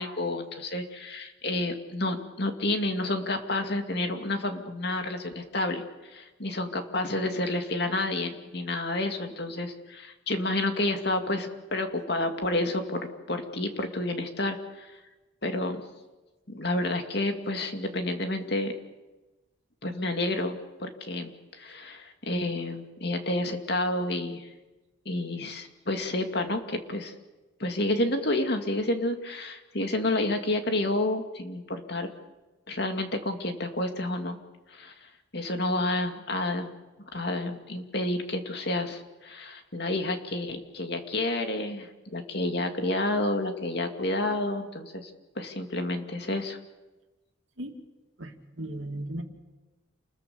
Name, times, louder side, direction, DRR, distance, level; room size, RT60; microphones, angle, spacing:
voice 1, 0.0-15.0 15.4-15.8 16.5-18.7 19.8-24.5 25.1-27.1 27.6-32.1 32.7-34.4 34.7-36.8 37.1-45.1 45.4-46.6, left 2 dB, 55° left, 5 dB, 2.5 m, -30 dB
voice 2, 48.2-49.2, right 1 dB, 75° right, 4 dB, 2.7 m, -36 dB
29.0 x 21.5 x 7.1 m, 1.1 s
head